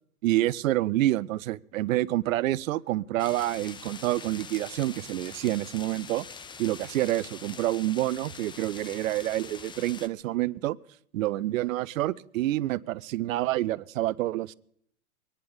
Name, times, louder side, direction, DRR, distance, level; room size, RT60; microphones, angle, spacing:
voice 1, 0.2-6.3 6.6-10.8 11.1-14.5, right 15 dB, 65° right, 23 dB, 0.6 m, -28 dB
sound 1, 3.2-10.1, left 5 dB, 10° left, 0.7 m, -44 dB
23.5 x 10.5 x 5.4 m, 0.69 s
hypercardioid pair, 115°, 43 cm